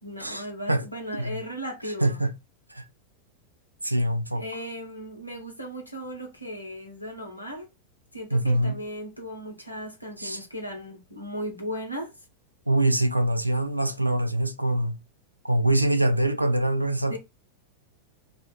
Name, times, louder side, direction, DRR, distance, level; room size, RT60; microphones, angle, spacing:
voice 1, 0.0-2.2 4.3-7.7 8.1-12.1 17.1-17.2, equal, 85° left, 0.8 m, -36 dB
voice 2, 2.0-2.3 2.7-2.8 3.8-4.4 8.3-8.8 10.2-10.4 12.7-15.0 15.4-17.2, right 1 dB, 85° right, 0.3 m, -24 dB
2.5 x 2.3 x 2.8 m
figure-of-eight pair, 90°, 0 cm